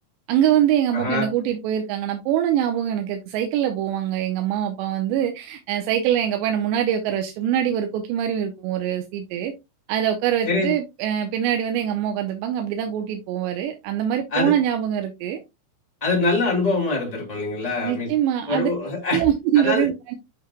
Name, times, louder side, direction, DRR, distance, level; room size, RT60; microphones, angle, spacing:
voice 1, 0.3-9.5 9.9-15.4 17.8-18.7 19.1-20.2, right 10 dB, 80° right, 2.8 m, -23 dB
voice 2, 0.9-1.3 10.4-10.7 14.3-14.5 16.0-18.1 18.5-19.2 19.5-19.9, left 3 dB, 15° left, 1.6 m, -24 dB
7.9 x 5.9 x 2.2 m
omnidirectional pair, 5.4 m